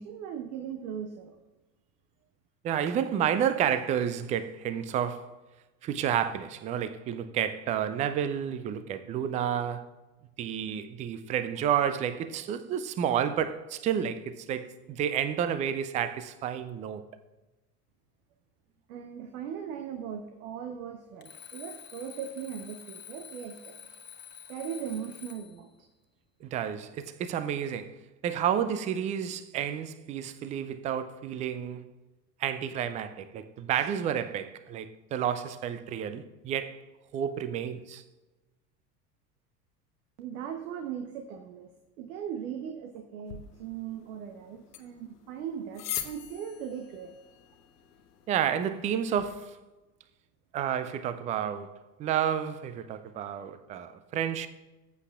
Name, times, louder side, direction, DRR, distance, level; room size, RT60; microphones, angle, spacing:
voice 1, 0.0-1.4 18.9-23.9 24.5-25.7 40.2-41.7 42.0-47.1, right 8 dB, 60° right, 1.0 m, -39 dB
voice 2, 2.6-5.4 5.8-9.9 10.4-17.0 26.4-28.0 28.2-31.9 32.4-36.8 37.1-38.0 48.3-49.6 50.5-54.5, right 9 dB, 15° right, 0.3 m, -30 dB
Alarm, 21.2-25.6, left 8 dB, 20° left, 1.1 m, -48 dB
sound 1, 43.3-49.3, left 9 dB, 75° left, 0.9 m, -43 dB
14.5 x 8.2 x 2.4 m
figure-of-eight pair, 75°, 48 cm